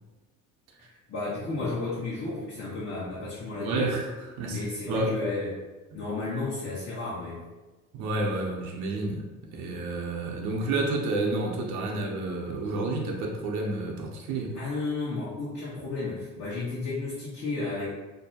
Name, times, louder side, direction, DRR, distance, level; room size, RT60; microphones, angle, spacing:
voice 1, 1.1-3.9 4.5-5.7 5.9-7.4 14.5-17.9, left 3 dB, 45° left, -9 dB, 0.9 m, -33 dB
voice 2, 3.5-4.1 4.4-5.1 5.9-6.0 7.9-9.2 9.5-14.5, right 2 dB, 80° right, -1 dB, 0.6 m, -30 dB
2.6 x 2.1 x 2.7 m, 1.2 s
supercardioid pair, 75°, 36 cm